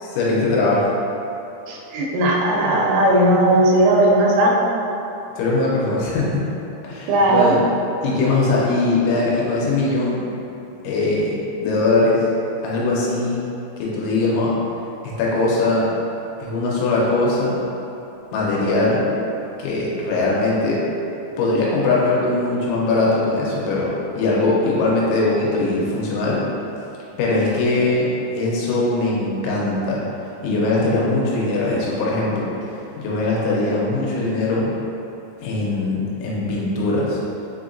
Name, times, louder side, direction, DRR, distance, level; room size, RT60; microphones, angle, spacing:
voice 1, 0.0-0.9 5.4-6.4 6.8-7.6 8.0-10.3 10.8-12.2 12.6-13.5 13.8-14.6 15.0-16.0 16.4-17.6 18.3-19.1 19.6-20.8 21.4-26.4 27.2-30.0 30.4-32.5 33.0-34.7 35.4-37.2, left 2 dB, 80° left, -5 dB, 3.1 m, -21 dB
voice 2, 1.7-4.6 7.1-7.5, right 1 dB, 85° right, -3 dB, 3.0 m, -16 dB
6.9 x 2.8 x 2.5 m, 3.0 s
omnidirectional pair, 5.5 m